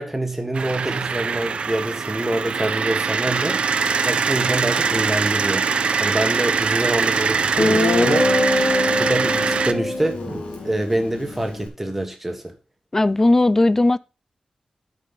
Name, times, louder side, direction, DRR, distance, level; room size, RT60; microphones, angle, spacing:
voice 1, 0.0-3.6 4.1-5.7 6.0-8.3 9.0-12.5, right 1 dB, 10° right, 1.5 m, -25 dB
sound 1, 0.5-9.7, right 5 dB, 60° right, 0.6 m, -22 dB
Guitar, 7.0-7.1 7.6-11.7, left 2 dB, 70° left, 2.3 m, -23 dB
voice 2, 12.9-14.0, left 2 dB, 20° left, 0.3 m, -17 dB
13.0 x 5.1 x 4.1 m
wide cardioid pair, 165°, 2 cm